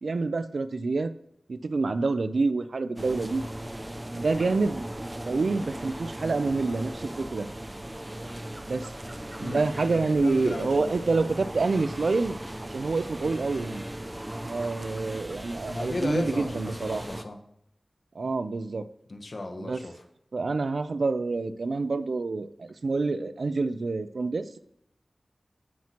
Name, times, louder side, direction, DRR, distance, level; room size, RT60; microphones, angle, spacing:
voice 1, 0.0-1.1 1.5-3.4 4.1-4.8 5.3-7.5 8.6-8.9 9.4-12.4 12.6-13.8 14.5-17.0 18.2-18.9 19.6-19.8 20.3-24.6, right 3 dB, 85° right, 12 dB, 0.5 m, -27 dB
sound 1, 3.0-17.2, right 1 dB, 20° right, 0.7 m, -38 dB
voice 2, 10.2-10.9 15.7-17.4 19.1-19.9, left 2 dB, 70° left, 4 dB, 1.4 m, -34 dB
16.5 x 5.8 x 3.0 m, 0.75 s
wide cardioid pair, 45°, 0 cm